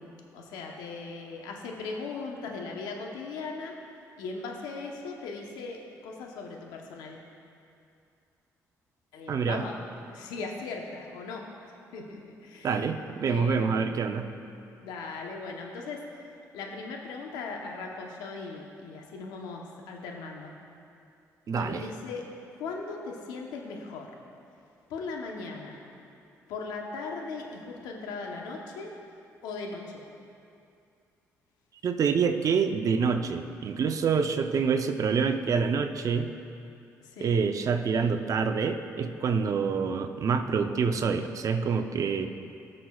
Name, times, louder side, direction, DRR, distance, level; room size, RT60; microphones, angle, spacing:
voice 1, 0.0-3.7 4.2-7.2 9.1-9.7 10.1-11.4 11.9-12.8 13.2-13.7 14.8-16.0 16.5-20.5 21.5-22.2 22.6-24.1 24.9-25.8 26.5-28.9 29.4-30.0 37.0-37.3, left 4 dB, 85° left, 1 dB, 0.9 m, -38 dB
voice 2, 9.3-9.6 12.6-14.3 21.5-21.9 31.8-36.3 37.2-42.3, right 5 dB, 55° right, 7 dB, 0.6 m, -26 dB
18.0 x 6.3 x 2.4 m, 2.5 s
supercardioid pair, 60°, 7 cm